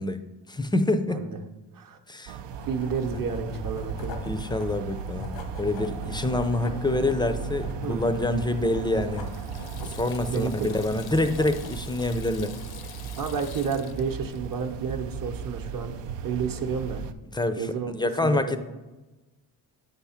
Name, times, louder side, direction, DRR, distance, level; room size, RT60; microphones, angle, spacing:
voice 1, 0.0-1.2 2.1-2.4 4.3-9.3 9.9-12.5 17.3-17.7 17.9-18.6, left 2 dB, 10° left, 10 dB, 0.4 m, -26 dB
voice 2, 1.1-1.4 1.7-2.0 2.7-4.1 7.7-8.0 9.8-9.9 10.3-10.7 13.2-15.9 16.2-17.0 17.6-17.9 18.2-18.6, right 6 dB, 50° right, 6 dB, 0.8 m, -31 dB
sound 1, 2.3-17.1, right 7 dB, 90° right, 0.5 m, -37 dB
Writing, 2.5-11.9, left 4 dB, 85° left, 1.0 m, -41 dB
Water tap faucet / Sink (filling or washing), 8.2-15.0, left 9 dB, 60° left, 0.5 m, -47 dB
7.7 x 3.5 x 5.7 m, 1.1 s
cardioid pair, 95°, 42 cm